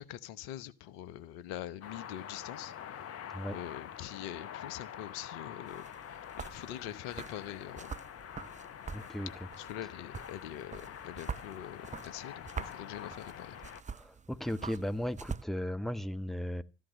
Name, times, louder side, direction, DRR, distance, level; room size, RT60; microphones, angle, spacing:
voice 1, 0.0-2.7 3.5-8.0 9.5-13.6, left 12 dB, 75° left, 1.1 m, -44 dB
sound 1, 1.8-13.8, left 9 dB, 50° left, 1.2 m, -46 dB
sound 2, 5.7-15.4, right 5 dB, 25° right, 0.8 m, -45 dB
voice 2, 8.9-9.3 13.9-16.6, equal, ahead, 1.4 m, -36 dB
14.0 x 11.5 x 6.4 m
hypercardioid pair, 50°, 30 cm